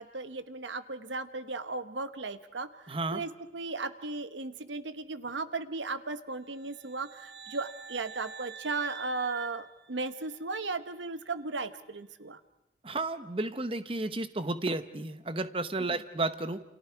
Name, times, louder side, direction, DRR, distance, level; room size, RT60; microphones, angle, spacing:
voice 1, 0.0-12.4, right 3 dB, 80° right, 12 dB, 1.1 m, -36 dB
voice 2, 2.9-3.2 12.8-16.6, right 2 dB, 30° right, 11 dB, 0.9 m, -32 dB
sound 1, 6.5-10.5, right 7 dB, 65° right, 1.3 m, -47 dB
29.5 x 27.0 x 4.6 m, 0.94 s
head